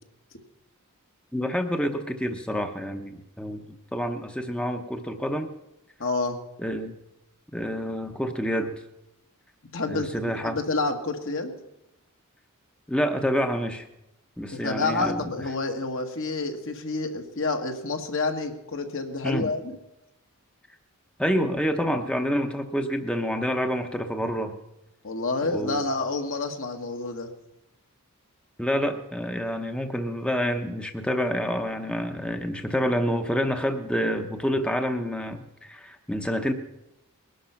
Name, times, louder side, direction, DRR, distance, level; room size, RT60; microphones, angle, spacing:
voice 1, 1.3-5.5 6.6-6.9 7.5-8.7 9.9-10.6 12.9-13.9 14.4-15.3 19.2-19.5 21.2-24.6 25.4-25.8 28.6-36.5, equal, 5° left, 6 dB, 0.8 m, -28 dB
voice 2, 6.0-6.4 9.7-11.5 14.5-19.8 25.0-27.3, left 3 dB, 60° left, 5 dB, 1.7 m, -29 dB
20.5 x 11.5 x 5.8 m, 0.89 s
head